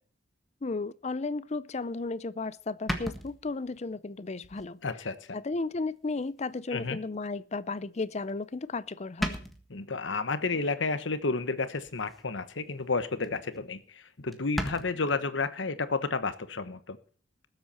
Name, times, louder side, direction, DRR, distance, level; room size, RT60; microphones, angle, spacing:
voice 1, 0.6-4.8 5.3-9.4, left 3 dB, 35° left, 0.5 m, -34 dB
sound 1, 2.1-2.2 2.9-3.8 4.4-4.7 5.2-5.3 6.5-6.6 8.3-8.6 8.9-9.0 9.2-9.8 11.8-12.2 12.6-12.9 13.2-13.3 13.5-13.6 13.9-14.0 14.3-14.9, equal, ahead, 1.6 m, -35 dB
voice 2, 4.8-5.4 6.7-7.0 9.7-17.0, left 3 dB, 80° left, 1.1 m, -31 dB
20.0 x 8.0 x 4.3 m
head